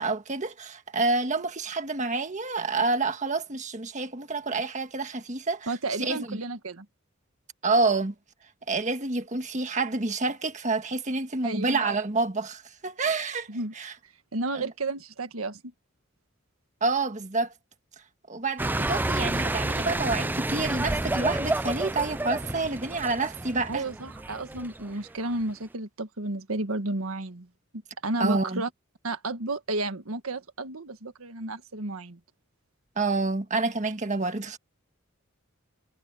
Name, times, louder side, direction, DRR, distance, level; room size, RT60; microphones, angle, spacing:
voice 1, 0.0-5.7 6.0-6.4 7.6-8.1 8.7-13.5 13.7-13.9 16.8-17.5 18.3-23.8 28.2-28.6 33.0-34.6, right 3 dB, 35° right, 1.6 m, -28 dB
voice 2, 5.7-6.8 11.4-11.8 13.5-13.7 14.3-15.6 23.7-27.5 28.0-28.7 29.0-32.2, right 2 dB, 90° right, 1.6 m, -32 dB
sound 1, 18.6-25.4, right 2 dB, 10° right, 0.4 m, -30 dB
head